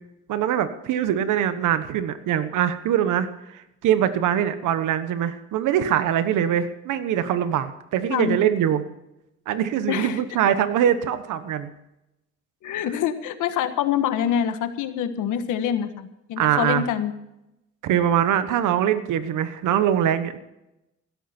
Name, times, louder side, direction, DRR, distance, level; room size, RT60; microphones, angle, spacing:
voice 1, 0.3-3.3 3.5-8.8 9.5-11.7 16.4-16.8 17.8-20.4, right 10 dB, 85° right, 11 dB, 1.3 m, -23 dB
voice 2, 9.9-10.2 12.6-17.1, left 9 dB, 85° left, 9 dB, 1.5 m, -25 dB
16.5 x 13.0 x 4.5 m, 0.88 s
cardioid pair, 90°, 30 cm